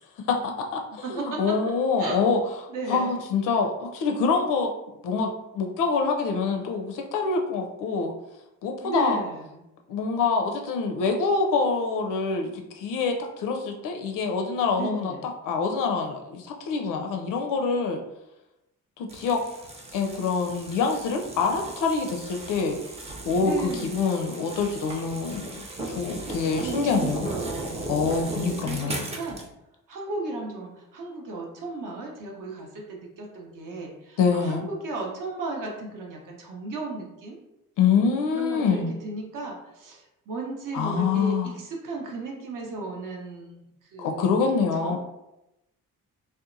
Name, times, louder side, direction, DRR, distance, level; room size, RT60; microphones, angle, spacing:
voice 1, 0.3-2.4 2.9-4.7 5.0-8.1 8.6-9.2 9.9-18.0 19.0-19.4 19.9-27.3 27.9-29.0 34.2-34.7 37.8-38.9 40.7-41.5 44.0-45.0, left 5 dB, 45° left, 3 dB, 0.4 m, -26 dB
voice 2, 1.0-1.4 2.0-2.2 2.7-3.1 8.8-9.6 14.7-15.3 23.4-24.2 26.4-27.9 28.3-29.4 29.9-37.4 38.3-43.6 43.9-44.3 44.8-45.0, right 3 dB, 45° right, -1 dB, 0.7 m, -35 dB
sound 1, 19.1-29.5, right 2 dB, 15° right, 0.4 m, -37 dB
2.7 x 2.1 x 2.5 m, 0.90 s
figure-of-eight pair, 40°, 45 cm